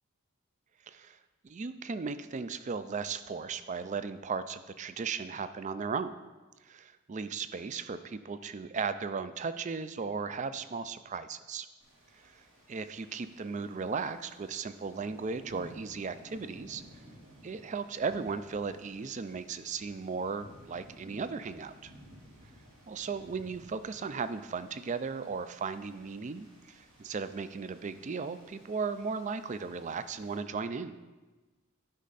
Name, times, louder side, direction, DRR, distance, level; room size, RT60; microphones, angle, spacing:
voice 1, 0.9-1.2 1.4-6.1 6.6-11.7 12.7-16.8 17.4-21.9 22.9-30.9, right 5 dB, 35° right, 12 dB, 0.3 m, -36 dB
sound 1, 11.8-30.4, equal, 70° right, 2.4 m, -56 dB
11.5 x 5.4 x 4.0 m, 1.2 s
head